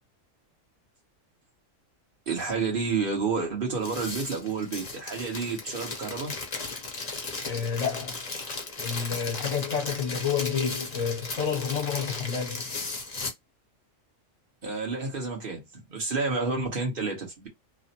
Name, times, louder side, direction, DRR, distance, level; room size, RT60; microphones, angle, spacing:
voice 1, 2.3-6.3 14.6-17.5, right 4 dB, 45° right, 1.3 m, -30 dB
sound 1, 3.7-13.3, left 3 dB, 35° left, 0.8 m, -36 dB
voice 2, 7.4-8.3 8.8-12.6, left 7 dB, 70° left, 1.1 m, -29 dB
3.1 x 2.1 x 2.8 m
omnidirectional pair, 1.4 m